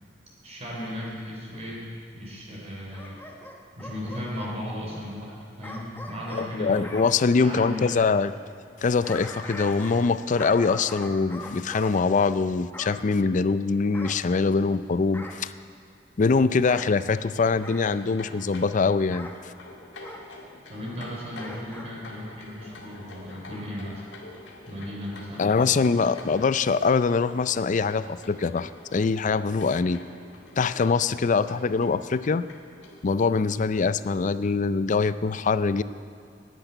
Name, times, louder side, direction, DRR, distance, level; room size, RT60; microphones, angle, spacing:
voice 1, 0.4-1.8 2.1-3.2 3.8-6.9 7.4-8.0 20.7-24.0 24.7-25.8, left 1 dB, 35° right, -3 dB, 3.5 m, -36 dB
Bark / Growling, 2.9-4.6 5.6-7.1 8.7-10.1 10.4-11.9 12.7-13.0 13.9-14.7 15.1-15.5 16.6-16.9 17.6-17.9 19.1-19.4 20.0-20.3 21.3-21.9 22.3-22.4, left 1 dB, 10° left, 1.1 m, -41 dB
voice 2, 6.3-8.3 8.8-15.5 16.2-19.3 25.4-30.0 30.6-32.5 33.0-35.8, left 4 dB, 45° left, 14 dB, 0.4 m, -23 dB
sound 1, 17.0-33.1, left 2 dB, 90° left, 2.0 m, -47 dB
10.5 x 10.5 x 9.1 m, 2.4 s
head